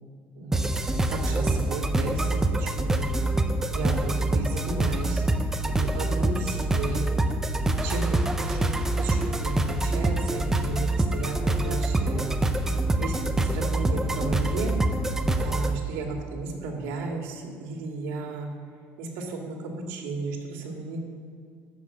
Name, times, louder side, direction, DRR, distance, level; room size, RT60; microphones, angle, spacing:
voice 1, 0.4-0.8 1.1-3.1 3.7-5.3 5.7-7.1 7.8-12.7 13.0-14.7 15.4-18.5 19.0-21.0, right 3 dB, 80° right, 1 dB, 2.4 m, -34 dB
sound 1, 0.5-15.8, right 2 dB, 10° right, 0.6 m, -25 dB
12.0 x 6.8 x 7.3 m, 2.3 s
cardioid pair, 155°, 5 cm